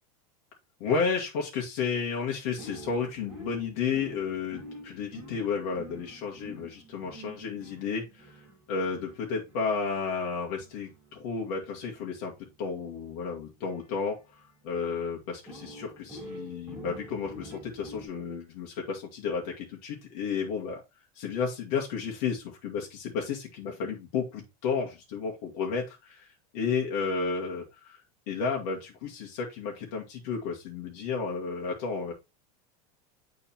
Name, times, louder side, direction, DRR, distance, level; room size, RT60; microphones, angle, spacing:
voice 1, 0.8-8.3 8.7-12.3 12.6-20.8 21.2-26.3 26.5-32.1, left 5 dB, 70° left, -1 dB, 1.8 m, -32 dB
sound 1, 2.6-14.7 15.5-18.1, right 1 dB, 5° right, 3.2 m, -48 dB
9.1 x 3.8 x 2.9 m, 0.24 s
supercardioid pair, 145°, 20 cm